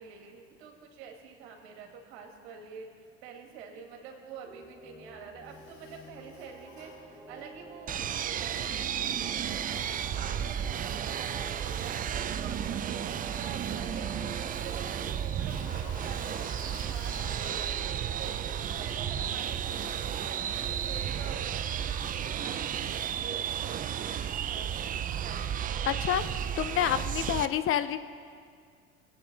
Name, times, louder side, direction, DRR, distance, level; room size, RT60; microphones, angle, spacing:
voice 1, 0.0-25.7, right 6 dB, 75° right, 2 dB, 2.0 m, -47 dB
sound 1, 4.4-21.0, equal, 10° right, 1.6 m, -50 dB
Toilet flush, 5.4-7.7 14.5-18.6, left 4 dB, 60° left, 2.6 m, -52 dB
sound 2, 7.9-27.5, right 9 dB, 25° right, 0.4 m, -33 dB
voice 2, 25.9-26.2 26.6-28.0, left 10 dB, 40° left, 12 dB, 0.6 m, -28 dB
19.5 x 8.8 x 4.0 m, 2.2 s
supercardioid pair, 90°, 31 cm